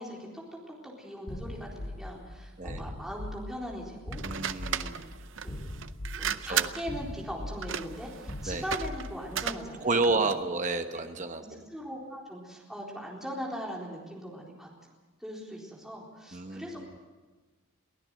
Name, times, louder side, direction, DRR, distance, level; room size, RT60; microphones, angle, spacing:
voice 1, 0.0-4.2 4.7-5.1 5.4-5.7 6.2-10.3 11.5-14.7 15.2-17.0, equal, ahead, -3 dB, 4.0 m, -40 dB
sound 1, 1.3-9.5, left 1 dB, 55° left, 2.1 m, -41 dB
sound 2, 4.1-10.5, right 8 dB, 60° right, 0.7 m, -35 dB
voice 2, 4.2-4.9 6.4-6.7 8.5-8.6 9.8-11.6 16.3-17.0, right 3 dB, 35° right, 6 dB, 1.1 m, -30 dB
23.0 x 16.0 x 7.7 m, 1.3 s
head